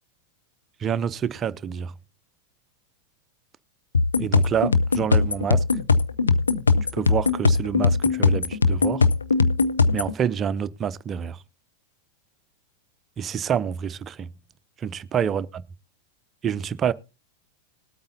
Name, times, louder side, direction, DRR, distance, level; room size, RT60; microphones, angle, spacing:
voice 1, 0.8-1.9 4.2-5.6 6.9-9.0 9.9-11.4 13.2-14.3 14.8-15.6 16.4-16.9, right 8 dB, 25° right, 0.6 m, -27 dB
sound 1, 3.9-10.1, left 4 dB, 75° left, 0.8 m, -20 dB
20.5 x 8.7 x 2.7 m
figure-of-eight pair, 90°, 0 cm